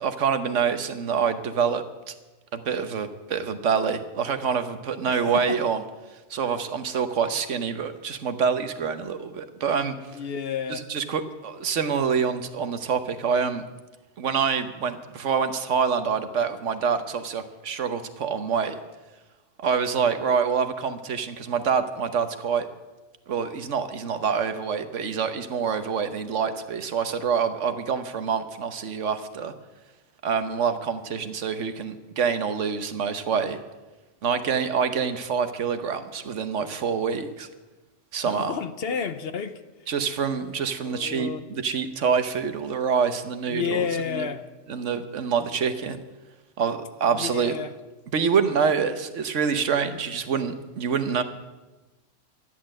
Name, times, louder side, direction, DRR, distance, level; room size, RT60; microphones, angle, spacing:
voice 1, 0.0-2.1 2.5-5.8 6.3-10.0 10.7-13.6 14.2-18.8 19.6-22.7 23.3-29.5 30.2-33.6 34.2-37.5 38.1-38.5 39.9-44.3 44.7-46.0 46.6-47.6 48.1-51.2, right 6 dB, 70° right, 1.3 m, -26 dB
voice 2, 5.1-5.6 10.1-10.9 38.2-39.6 40.8-41.5 43.5-44.4 47.1-47.7 51.1-51.2, left 7 dB, 55° left, 0.9 m, -31 dB
12.5 x 11.0 x 7.6 m
omnidirectional pair, 1.3 m